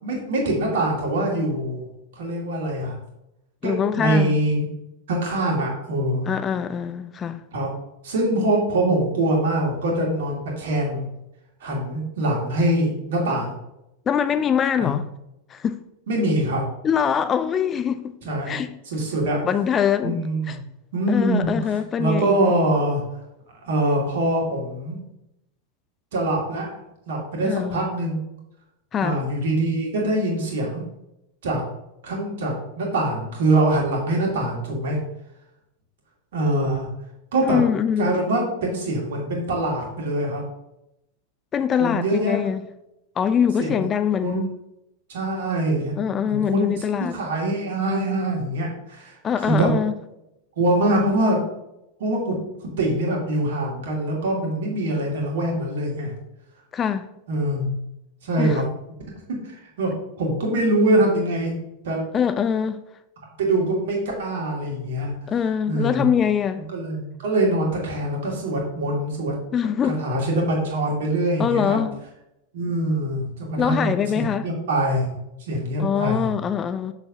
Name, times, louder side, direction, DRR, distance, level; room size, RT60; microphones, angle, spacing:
voice 1, 0.0-1.9 2.2-3.0 3.6-4.7 5.1-6.3 7.5-7.7 8.0-11.1 11.6-13.5 14.8-15.0 16.1-16.6 18.3-18.6 18.9-19.4 20.0-20.6 20.9-21.6 22.0-23.0 23.6-25.0 26.1-26.7 27.1-28.2 29.0-30.8 31.4-31.6 32.0-35.0 36.3-36.9 37.3-37.6 38.0-40.4 41.8-42.5 43.6-43.8 44.2-44.5 45.1-46.0 46.2-46.7 47.1-49.2 49.4-49.7 50.6-51.4 52.0-52.4 52.6-56.1 57.3-57.7 58.2-58.6 59.3-59.9 60.2-62.0 63.4-65.1 65.7-66.0 66.7-69.3 70.0-71.8 72.5-75.1 75.5-76.3, right 1 dB, 60° right, 2.4 m, -23 dB
voice 2, 3.6-4.3 6.3-7.4 14.1-15.0 15.5-15.8 16.8-18.1 18.5-18.7 19.4-20.2 20.5-20.6 21.1-22.5 27.4-27.8 28.9-29.2 37.4-38.1 41.5-42.6 43.2-44.5 46.0-47.2 49.2-49.9 56.7-57.1 58.4-58.6 62.1-62.8 65.3-66.6 69.5-70.0 71.4-72.0 73.6-74.5 75.8-76.9, left 8 dB, 25° left, 0.4 m, -23 dB
6.9 x 6.5 x 2.8 m
figure-of-eight pair, 90°, 0 cm